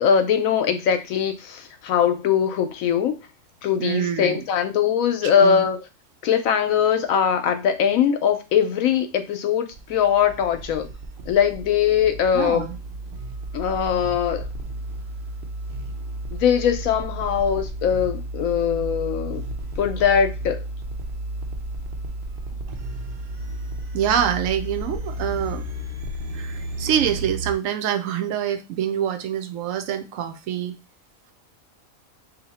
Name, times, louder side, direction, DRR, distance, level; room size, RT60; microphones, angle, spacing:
voice 1, 0.0-3.2 3.6-5.8 6.2-10.9 11.3-12.7 13.5-14.4 16.3-19.4 19.8-20.6, left 8 dB, 85° left, 8 dB, 1.0 m, -21 dB
voice 2, 3.8-4.4 5.2-5.7 12.3-12.8 23.9-25.6 26.3-30.7, right 9 dB, 75° right, 8 dB, 1.0 m, -25 dB
sound 1, 9.7-27.5, right 1 dB, 55° right, 0.7 m, -33 dB
2.8 x 2.6 x 4.2 m, 0.28 s
omnidirectional pair, 1.4 m